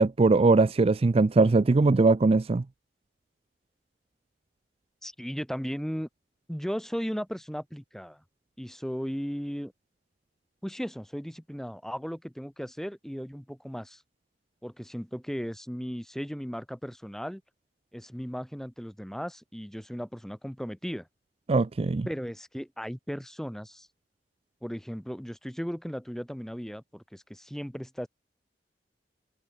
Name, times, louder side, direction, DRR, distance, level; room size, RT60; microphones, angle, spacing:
voice 1, 0.0-2.6 21.5-22.1, right 3 dB, 35° right, 0.4 m, -21 dB
voice 2, 5.0-6.1 6.5-8.2 8.6-9.7 10.6-14.0 14.6-17.4 17.9-21.1 22.1-23.9 24.6-28.1, equal, 5° left, 4.2 m, -36 dB
head